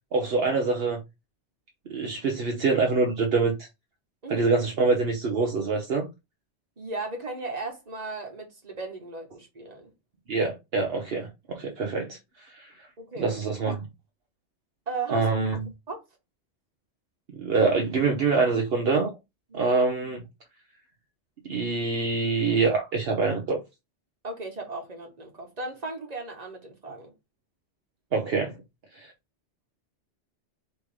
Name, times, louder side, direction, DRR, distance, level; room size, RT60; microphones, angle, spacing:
voice 1, 0.1-1.0 1.9-3.5 4.3-6.1 10.3-12.7 13.2-13.9 15.1-15.7 17.3-19.1 19.5-20.2 21.4-23.6 28.1-28.6 28.9-29.1, right 4 dB, 60° right, 1.0 m, -25 dB
voice 2, 6.8-9.9 13.0-13.3 14.9-15.3 15.9-16.0 19.5-19.7 24.2-27.1, right 3 dB, 35° right, 1.5 m, -36 dB
4.2 x 3.4 x 3.5 m
omnidirectional pair, 1.1 m